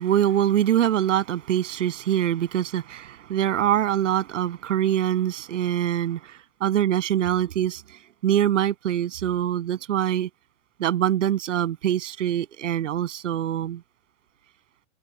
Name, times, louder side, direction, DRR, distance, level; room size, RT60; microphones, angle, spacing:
voice 1, 0.0-7.8 8.2-10.3 10.8-13.8, right 11 dB, 85° right, 7.6 m, -24 dB
supercardioid pair, 160°, 36 cm